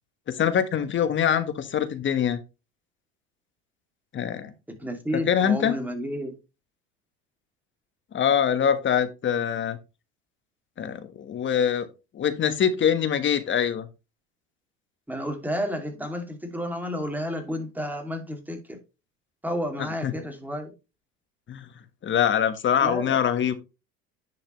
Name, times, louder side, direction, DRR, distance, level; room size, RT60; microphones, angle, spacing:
voice 1, 0.4-2.4 4.1-4.5 5.1-5.7 8.1-9.8 10.8-11.9 12.1-13.9 20.0-20.1 21.5-21.7 22.0-23.6, left 8 dB, 35° left, 1.4 m, -24 dB
voice 2, 4.8-6.4 15.1-18.8 19.4-20.7 22.8-23.2, equal, 5° right, 2.5 m, -31 dB
10.5 x 5.8 x 3.1 m
supercardioid pair, 105°, 33 cm